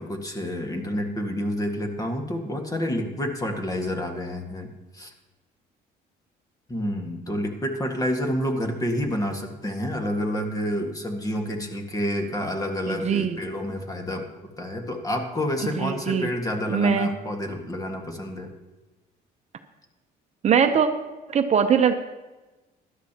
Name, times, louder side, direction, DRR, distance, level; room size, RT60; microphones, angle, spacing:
voice 1, 0.0-5.1 6.7-14.3 14.6-18.5, equal, 20° left, 3 dB, 1.7 m, -29 dB
voice 2, 12.9-13.4 15.6-16.3 16.7-17.1 20.4-20.9 21.3-21.9, right 7 dB, 40° right, 7 dB, 0.8 m, -21 dB
17.0 x 12.0 x 2.9 m, 1.1 s
cardioid pair, 110°, 17 cm